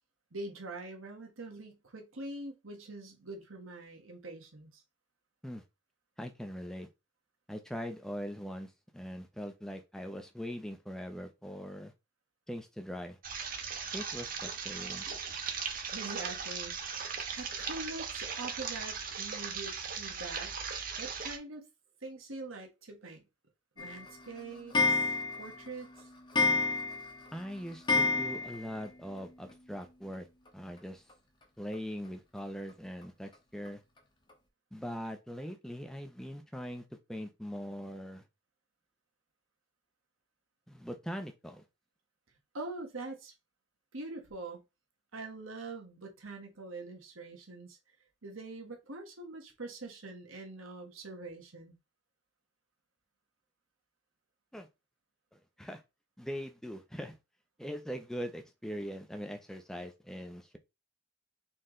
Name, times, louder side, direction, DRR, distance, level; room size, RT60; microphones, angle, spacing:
voice 1, 0.3-4.8 15.9-20.6 21.0-21.7 22.0-23.2 23.8-26.1 42.5-43.3 43.9-44.6 45.1-47.8 48.2-51.8, right 2 dB, 90° right, 1.4 m, -44 dB
voice 2, 6.2-6.9 7.5-11.9 12.5-13.2 13.9-15.1 27.3-30.3 30.5-31.0 31.6-33.8 34.7-36.8 37.1-38.2 40.7-41.6 54.5-54.7 55.3-55.8 56.2-57.2 57.6-60.6, equal, 5° left, 0.6 m, -41 dB
sound 1, 13.2-21.4, right 6 dB, 45° right, 0.8 m, -38 dB
Clock, 23.8-28.9 29.2-29.3 29.5-29.6 29.8-29.9 31.1-31.2 31.7-31.8 32.4-32.5 33.0-33.1 33.7-33.8 34.3-34.4, left 3 dB, 25° left, 1.0 m, -31 dB
4.4 x 3.1 x 3.8 m
head